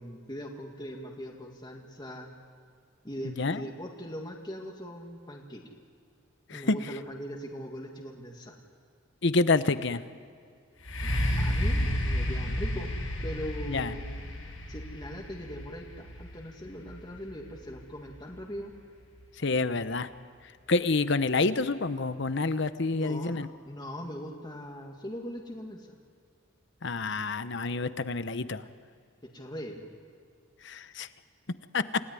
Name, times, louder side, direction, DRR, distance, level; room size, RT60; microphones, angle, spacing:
voice 1, 0.0-2.3 3.0-5.7 6.5-8.6 11.0-12.9 13.2-14.2 14.7-18.7 22.8-25.9 29.3-29.9, equal, 20° left, 1 dB, 2.1 m, -40 dB
voice 2, 9.2-10.0 13.7-13.9 19.4-20.1 20.7-23.5 26.8-28.6 30.6-31.1 31.7-32.0, left 3 dB, 55° left, 13 dB, 0.9 m, -28 dB
sound 1, 10.8-18.6 19.2-19.3, equal, 90° left, 7.3 m, -32 dB
28.0 x 17.0 x 9.8 m, 2.2 s
head